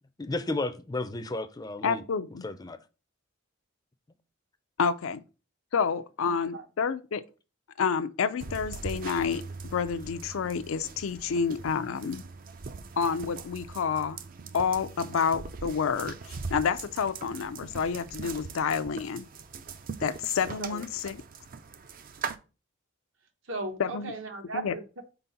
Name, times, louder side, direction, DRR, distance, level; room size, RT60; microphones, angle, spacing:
voice 1, 0.2-2.0 2.4-2.8, left 2 dB, 20° left, 0.4 m, -33 dB
voice 2, 1.8-2.4 4.8-5.2 5.7-7.2 7.8-9.4 9.7-12.2 13.0-14.2 14.5-19.3 20.0-21.2 23.8-24.1 24.5-24.7, left 6 dB, 80° left, 0.4 m, -29 dB
voice 3, 6.2-6.6 20.6-20.8 23.4-25.0, right 3 dB, 70° right, 1.1 m, -37 dB
sound 1, 8.4-22.4, right 4 dB, 40° right, 0.5 m, -41 dB
4.5 x 4.0 x 5.6 m
head